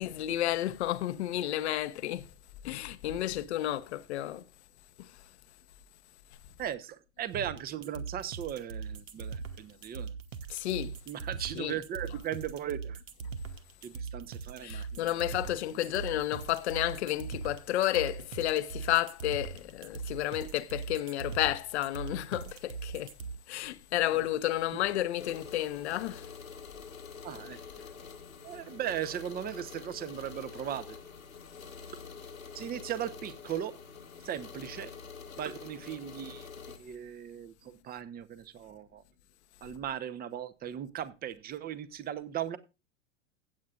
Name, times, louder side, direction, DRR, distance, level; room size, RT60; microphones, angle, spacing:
voice 1, 0.0-2.3 2.6-4.5 5.0-5.1 10.5-10.9 11.5-11.8 14.6-23.1 23.5-26.3, left 13 dB, 55° left, 1.0 m, -31 dB
voice 2, 6.6-10.1 11.1-13.0 13.8-15.1 24.2-24.3 27.2-27.6 28.4-31.0 32.5-33.7 34.2-34.9 35.4-36.5 36.8-39.0 39.6-42.6, right 10 dB, 20° right, 1.0 m, -37 dB
sound 1, 7.3-23.3, right 5 dB, 65° right, 1.2 m, -40 dB
sound 2, 25.2-36.8, left 6 dB, 80° left, 1.7 m, -47 dB
16.0 x 8.5 x 2.5 m
figure-of-eight pair, 90°, 41 cm